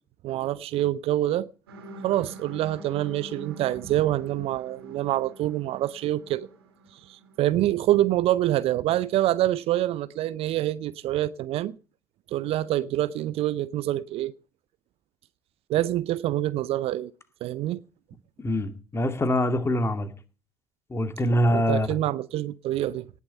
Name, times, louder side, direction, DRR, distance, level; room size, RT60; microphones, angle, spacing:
voice 1, 0.2-1.5 2.0-6.5 6.9-11.7 12.3-14.3 15.7-17.1 17.4-17.8 21.5-23.1, right 14 dB, 50° right, 0.6 m, -26 dB
sound 1, 1.7-7.7, right 2 dB, 80° right, 2.9 m, -46 dB
voice 2, 18.4-20.1 20.9-21.9, equal, 20° left, 2.4 m, -24 dB
19.0 x 7.2 x 6.6 m
figure-of-eight pair, 65°, 13 cm